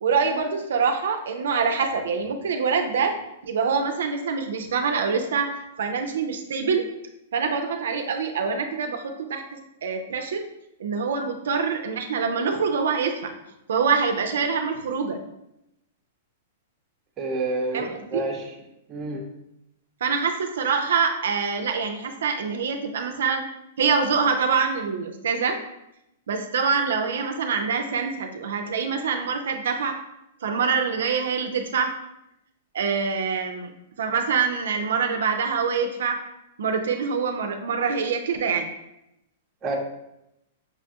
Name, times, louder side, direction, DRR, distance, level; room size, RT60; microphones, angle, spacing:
voice 1, 0.0-3.1 3.4-6.9 7.3-10.4 10.8-13.3 13.7-15.2 17.7-18.2 20.0-23.4 23.8-25.6 26.3-30.0 30.4-31.9 32.7-33.7 34.0-36.2 36.6-38.7, right 5 dB, 85° right, 5 dB, 0.4 m, -25 dB
voice 2, 17.2-18.4 18.9-19.2 39.6-39.8, right 2 dB, 25° right, 1 dB, 0.6 m, -28 dB
5.4 x 2.2 x 2.8 m, 0.85 s
hypercardioid pair, 150°, 0 cm